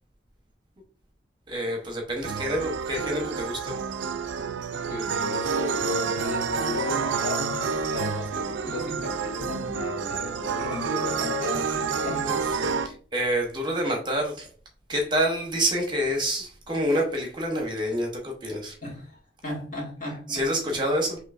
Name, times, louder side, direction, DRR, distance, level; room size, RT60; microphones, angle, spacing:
voice 1, 1.5-3.8 12.0-14.5 14.9-18.8 20.3-21.2, equal, 25° right, 1 dB, 0.9 m, -28 dB
sound 1, 2.2-12.9, right 5 dB, 85° right, 0.4 m, -29 dB
voice 2, 4.9-12.5 18.8-20.5, left 2 dB, 45° left, -3 dB, 2.0 m, -35 dB
6.3 x 3.1 x 2.5 m, 0.42 s
head